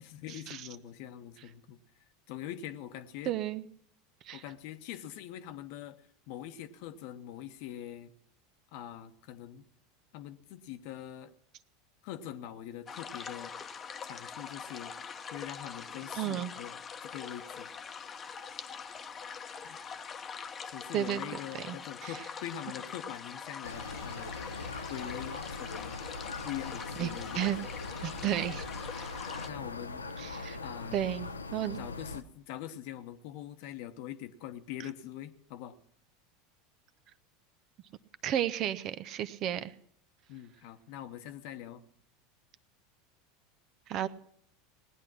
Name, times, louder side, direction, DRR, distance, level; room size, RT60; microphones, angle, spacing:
voice 1, 0.1-1.8 2.3-3.3 4.3-6.0 6.3-8.1 8.7-9.6 10.1-11.3 12.0-13.5 14.0-14.9 15.3-17.7 19.6-19.8 20.7-24.4 24.9-26.0 26.4-27.5 28.2-28.4 29.5-30.0 30.5-31.0 31.8-35.7 40.3-41.8, left 11 dB, 55° left, 11 dB, 1.0 m, -43 dB
voice 2, 3.3-3.7 4.2-4.4 16.1-16.5 20.9-21.2 21.5-21.8 22.0-22.1 27.0-27.6 28.0-28.6 29.0-29.1 30.2-30.6 30.9-31.8 38.2-39.7 43.9-44.1, right 11 dB, 45° right, 14 dB, 0.7 m, -32 dB
sound 1, 12.9-29.5, left 6 dB, 30° left, 0.9 m, -43 dB
sound 2, 23.6-32.2, left 3 dB, 85° left, 0.7 m, -41 dB
18.5 x 10.0 x 6.1 m, 0.66 s
figure-of-eight pair, 80°, 0 cm